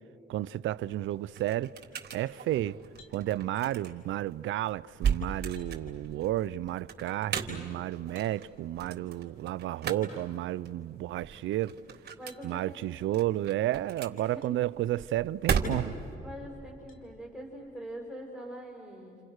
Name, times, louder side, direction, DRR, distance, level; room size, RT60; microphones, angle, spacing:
voice 1, 0.3-1.7 2.1-2.8 3.1-11.8 12.4-15.9, right 14 dB, 75° right, 0.6 m, -32 dB
sound 1, 0.6-16.2, right 6 dB, 55° right, 3.6 m, -37 dB
sound 2, 3.0-3.2 4.9-5.0 5.6-5.8 8.1-8.4 10.2-10.3 12.3-12.5 14.4-14.6 15.2-15.3 16.9-17.1, left 5 dB, 90° left, 3.2 m, -59 dB
voice 2, 12.2-13.0 14.3-14.4 16.2-19.2, right 1 dB, ahead, 5.9 m, -43 dB
29.5 x 29.5 x 6.5 m
cardioid pair, 90°, 20 cm